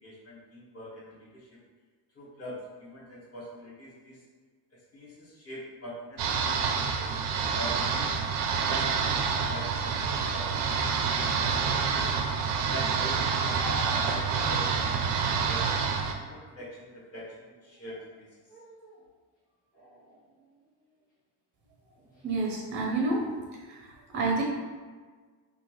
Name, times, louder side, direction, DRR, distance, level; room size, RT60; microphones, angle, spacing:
voice 1, 0.0-1.5 2.1-4.2 4.9-8.2 8.6-10.7 11.1-12.1 12.7-13.7 14.0-15.7 16.2-18.3, equal, 35° left, -7 dB, 1.2 m, -43 dB
sound 1, 6.2-16.1, right 5 dB, 80° right, 0.5 m, -28 dB
sound 2, 13.6-14.8 15.6-16.8 17.6-18.1 18.5-19.0 19.7-21.0 21.8-22.2, left 2 dB, 20° left, 1.5 m, -47 dB
voice 2, 22.2-23.2 23.7-23.8 24.1-24.4, right 3 dB, 25° right, -2 dB, 0.6 m, -28 dB
3.9 x 2.5 x 3.0 m, 1.5 s
cardioid pair, 155°, 43 cm